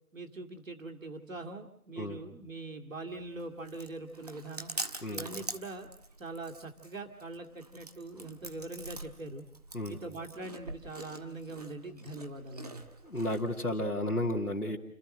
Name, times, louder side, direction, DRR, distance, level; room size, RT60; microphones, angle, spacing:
voice 1, 0.1-4.7 5.1-5.9 6.2-9.4 9.9-12.9, right 2 dB, 60° right, 4 dB, 2.3 m, -42 dB
Chewing mastication, 3.1-13.8, right 2 dB, 25° right, 1.4 m, -45 dB
voice 2, 13.0-14.8, left 1 dB, 90° left, -3 dB, 2.6 m, -32 dB
30.0 x 13.5 x 7.7 m, 0.74 s
figure-of-eight pair, 160°, 43 cm